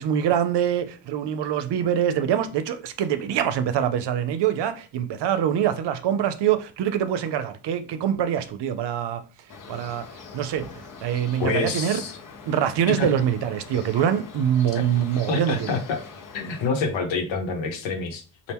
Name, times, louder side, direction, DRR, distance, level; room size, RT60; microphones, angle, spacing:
voice 1, 0.0-9.2 9.7-10.1 10.3-10.7 11.0-12.0 12.4-15.7, right 9 dB, 70° right, 0.6 m, -24 dB
sound 1, 9.5-16.7, left 5 dB, 45° left, 0.9 m, -43 dB
voice 2, 11.4-12.2 12.9-13.1 13.7-13.8 14.7-14.9 15.3-16.0 16.3-18.5, left 4 dB, 85° left, 1.1 m, -27 dB
4.4 x 2.5 x 3.5 m
cardioid pair, 105°, 44 cm